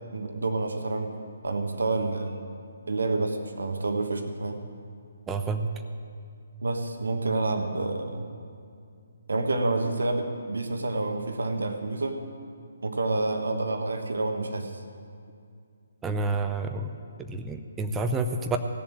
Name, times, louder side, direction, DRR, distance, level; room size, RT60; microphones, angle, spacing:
voice 1, 0.1-1.1 1.4-2.4 2.9-4.6 6.6-8.3 9.3-12.2 12.8-14.8, right 2 dB, 70° right, 6 dB, 1.2 m, -28 dB
voice 2, 5.3-5.7 16.0-16.9 17.2-18.6, right 3 dB, 10° right, 5 dB, 0.7 m, -29 dB
17.0 x 7.1 x 8.7 m, 2.4 s
figure-of-eight pair, 140°, 0 cm